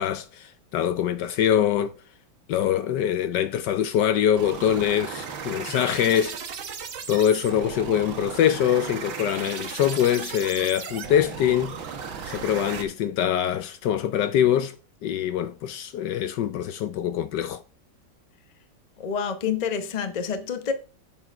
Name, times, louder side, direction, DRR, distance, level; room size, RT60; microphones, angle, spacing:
voice 1, 0.0-1.9 2.5-6.4 7.1-11.7 12.2-14.7 15.0-17.6, left 10 dB, 70° left, 1.1 m, -24 dB
sound 1, 4.3-12.8, right 6 dB, 80° right, 1.9 m, -36 dB
voice 2, 19.0-20.7, left 6 dB, 35° left, 0.7 m, -28 dB
7.8 x 6.2 x 4.5 m
omnidirectional pair, 2.1 m